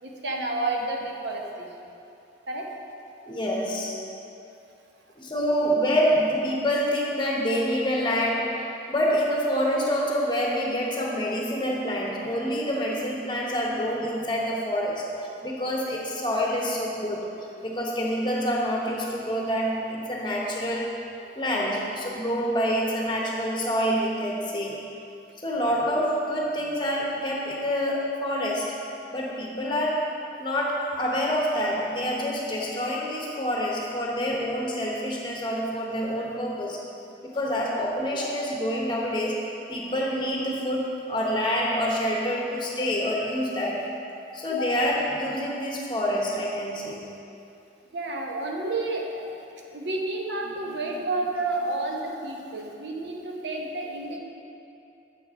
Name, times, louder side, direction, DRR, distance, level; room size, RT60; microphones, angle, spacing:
voice 1, 0.0-1.7 2.5-2.7 21.7-21.9 25.6-25.8 44.6-44.7 47.9-49.3 49.7-54.2, right 2 dB, 80° right, 0 dB, 0.9 m, -30 dB
voice 2, 3.3-4.0 5.2-15.1 15.4-17.3 17.6-21.0 21.4-24.8 25.4-28.8 29.1-30.1 30.4-36.8 37.3-43.9 44.3-47.1, equal, 25° left, -3 dB, 1.0 m, -27 dB
7.2 x 4.6 x 5.4 m, 2.7 s
head